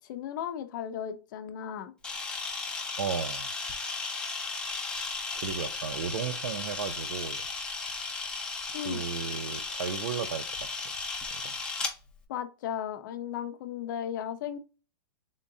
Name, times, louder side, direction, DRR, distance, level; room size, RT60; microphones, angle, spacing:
voice 1, 0.1-1.9 8.7-9.0 12.3-14.6, left 9 dB, 55° left, 0.6 m, -35 dB
Camera, 2.0-11.9, left 4 dB, 5° left, 0.6 m, -35 dB
voice 2, 2.9-3.5 5.4-7.5 8.8-10.7 11.4-11.6, right 7 dB, 75° right, 0.6 m, -34 dB
3.7 x 3.6 x 2.7 m
hypercardioid pair, 155°, 13 cm